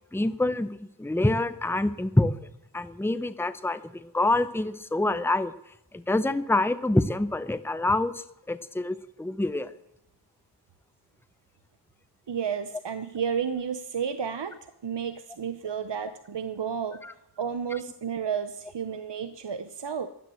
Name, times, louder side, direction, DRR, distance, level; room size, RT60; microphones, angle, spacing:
voice 1, 0.1-2.3 2.7-5.5 5.9-9.7 17.0-17.1, left 2 dB, 5° left, 12 dB, 0.7 m, -26 dB
voice 2, 12.3-17.0 17.4-20.1, right 7 dB, 70° right, 10 dB, 0.9 m, -32 dB
15.5 x 11.0 x 7.7 m, 0.84 s
wide cardioid pair, 65°, 43 cm